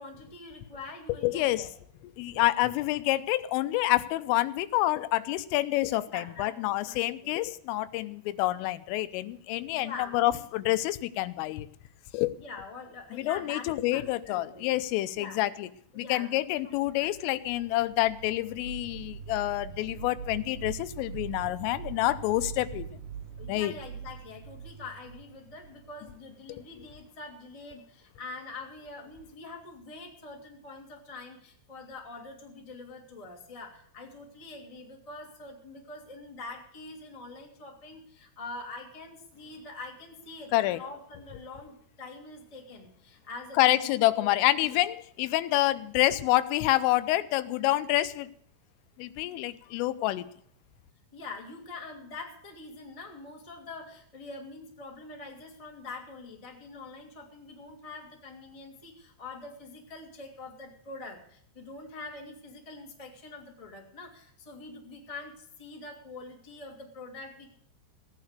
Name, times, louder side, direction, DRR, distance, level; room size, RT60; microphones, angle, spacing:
voice 1, 0.0-1.8 2.3-2.5 6.1-7.5 9.7-10.7 12.4-14.7 15.1-15.4 15.9-17.1 23.4-44.3 44.6-44.8 51.1-67.5, left 3 dB, 15° left, 0 dB, 1.0 m, -44 dB
voice 2, 1.2-1.6 2.2-11.7 12.1-12.3 13.1-15.7 16.0-22.9 23.5-23.7 40.5-40.8 43.6-48.3 49.0-50.3, left 16 dB, 85° left, 13 dB, 3.3 m, -27 dB
sound 1, 16.8-26.5, right 7 dB, 85° right, 1.4 m, -43 dB
16.5 x 9.5 x 6.6 m, 0.65 s
omnidirectional pair, 5.7 m